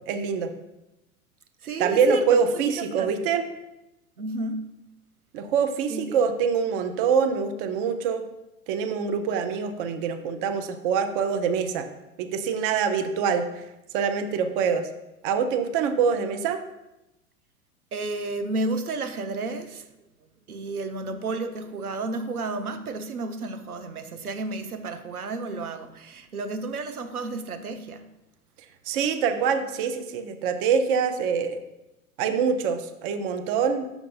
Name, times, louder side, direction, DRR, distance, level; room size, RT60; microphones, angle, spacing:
voice 1, 0.1-0.5 1.8-3.4 5.3-8.2 8.7-11.9 12.2-13.6 13.9-14.9 15.2-16.6 28.9-31.6 32.2-33.9, right 6 dB, 40° right, 9 dB, 0.6 m, -25 dB
voice 2, 1.6-2.4 2.8-3.3 4.2-4.7 5.9-6.2 17.9-19.9 20.5-28.1, right 3 dB, 85° right, 8 dB, 0.7 m, -32 dB
6.3 x 4.5 x 4.2 m, 0.96 s
figure-of-eight pair, 90°, 43 cm